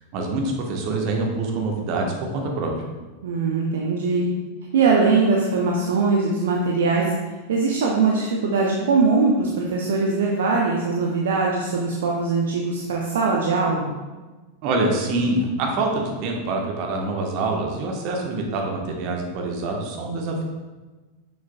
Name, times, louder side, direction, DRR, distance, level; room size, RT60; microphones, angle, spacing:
voice 1, 0.1-2.7 14.6-20.4, right 2 dB, 45° right, 0 dB, 1.2 m, -25 dB
voice 2, 3.2-4.3 4.7-7.1 7.5-13.9, right 4 dB, 60° right, -1 dB, 0.7 m, -21 dB
6.9 x 6.4 x 2.3 m, 1.2 s
figure-of-eight pair, 90°, 0 cm